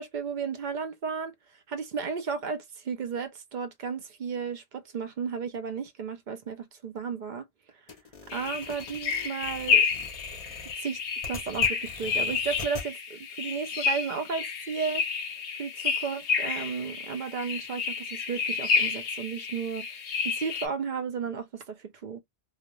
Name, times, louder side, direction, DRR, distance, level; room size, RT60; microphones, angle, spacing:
voice 1, 0.0-1.3 1.7-7.5 8.3-9.8 10.3-10.4 10.8-11.0 11.3-15.0 15.6-19.9 20.2-22.2, right 6 dB, 55° right, 0.6 m, -34 dB
sound 1, 7.9-12.9, left 3 dB, 40° left, 0.6 m, -44 dB
sound 2, 8.3-20.7, left 5 dB, 90° left, 0.9 m, -30 dB
2.4 x 2.0 x 2.9 m
omnidirectional pair, 1.1 m